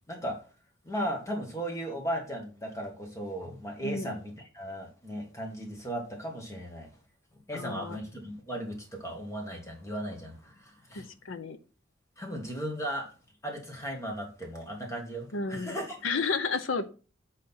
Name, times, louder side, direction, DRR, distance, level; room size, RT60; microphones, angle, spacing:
voice 1, 0.1-0.4 0.8-6.9 7.5-11.1 12.2-13.1 13.4-16.0, equal, 15° left, 1.6 m, -36 dB
voice 2, 7.5-8.0 10.9-11.6 15.3-15.8 16.0-16.9, left 4 dB, 90° left, 0.8 m, -32 dB
7.8 x 4.2 x 4.1 m
head